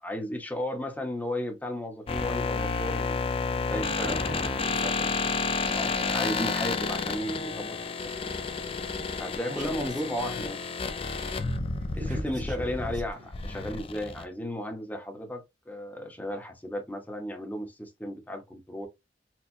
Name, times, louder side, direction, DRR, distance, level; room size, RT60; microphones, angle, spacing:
voice 1, 0.0-3.3 3.7-5.1 5.7-7.8 8.0-8.1 9.2-10.6 12.1-18.9, equal, 10° left, 0.9 m, -35 dB
sound 1, 2.1-14.2, left 4 dB, 35° left, 0.5 m, -31 dB
voice 2, 3.6-5.6 9.5-10.5 11.4-13.3, right 1 dB, 45° right, 1.0 m, -43 dB
4.4 x 2.3 x 2.6 m
head